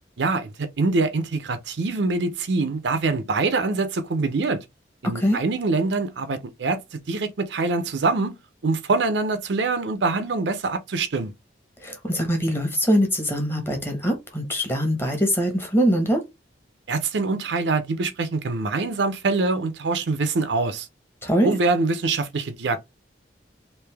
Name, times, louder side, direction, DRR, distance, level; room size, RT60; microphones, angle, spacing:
voice 1, 0.2-4.6 5.0-8.3 8.6-11.3 16.9-20.9 21.4-22.8, right 3 dB, 75° right, 0.5 m, -24 dB
voice 2, 5.0-5.4 11.8-16.2 21.2-21.6, equal, 15° left, 1.1 m, -23 dB
3.2 x 2.6 x 3.4 m
head